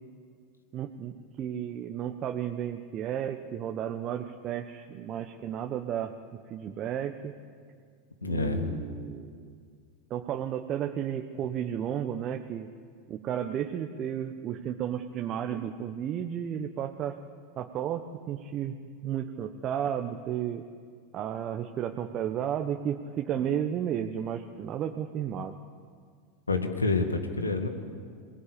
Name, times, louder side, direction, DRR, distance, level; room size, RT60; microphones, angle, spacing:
voice 1, 0.7-6.1 6.5-7.3 8.2-9.4 10.1-12.7 13.1-17.2 17.6-18.0 18.3-18.7 19.0-20.6 21.1-25.5, right 9 dB, 40° right, 5 dB, 1.2 m, -33 dB
voice 2, 8.2-8.7 26.5-27.7, left 3 dB, 90° left, 7 dB, 2.2 m, -28 dB
26.0 x 18.5 x 8.6 m, 2.1 s
figure-of-eight pair, 85°, 0 cm